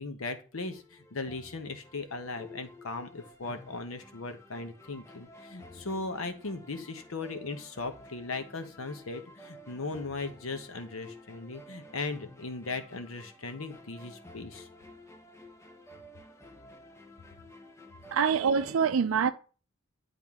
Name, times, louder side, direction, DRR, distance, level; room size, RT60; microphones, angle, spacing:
voice 1, 0.0-14.7, left 3 dB, 85° left, 1.0 m, -38 dB
sound 1, 0.5-18.8, left 1 dB, 15° left, 0.5 m, -52 dB
voice 2, 18.1-19.3, right 6 dB, 80° right, 0.4 m, -25 dB
10.5 x 3.6 x 3.6 m
head